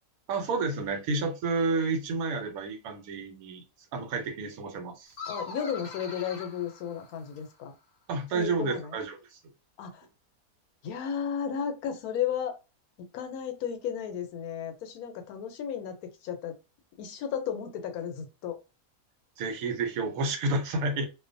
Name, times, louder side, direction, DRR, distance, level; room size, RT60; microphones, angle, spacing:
voice 1, 0.3-3.6 3.9-5.1 8.1-9.4 19.4-21.1, right 3 dB, 75° right, 5 dB, 1.1 m, -30 dB
sound 1, 5.1-7.6, left 4 dB, 55° left, 0.8 m, -42 dB
voice 2, 5.3-7.7 8.3-9.0 9.8-10.1 10.8-12.5 13.1-16.0 16.2-16.5 17.0-18.6, left 8 dB, 80° left, 6 dB, 1.1 m, -34 dB
2.5 x 2.1 x 2.5 m, 0.29 s
omnidirectional pair, 1.6 m